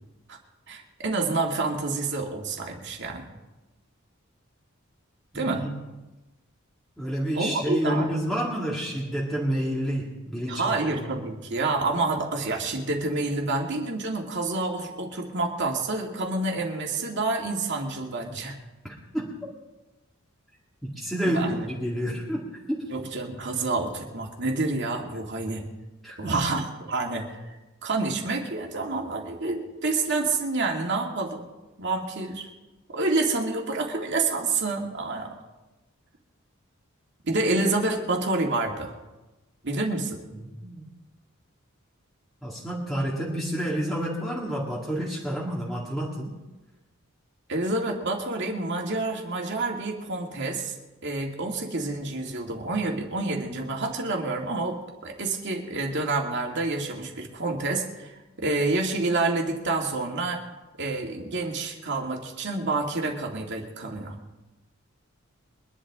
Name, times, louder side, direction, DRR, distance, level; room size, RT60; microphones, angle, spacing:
voice 1, 0.7-3.3 5.3-5.7 7.3-8.1 10.5-18.6 21.3-21.7 22.9-25.7 26.2-27.5 27.8-31.5 31.8-32.5 32.9-35.4 37.2-38.9 39.6-40.2 47.5-50.8 51.0-60.4 60.8-64.2, right 3 dB, 55° right, 1 dB, 2.3 m, -28 dB
voice 2, 5.3-5.8 7.0-10.8 11.0-11.2 18.8-19.3 20.8-22.9 26.0-26.5 40.4-40.9 42.4-46.3, equal, ahead, -5 dB, 2.1 m, -29 dB
23.5 x 11.0 x 3.7 m, 1.1 s
head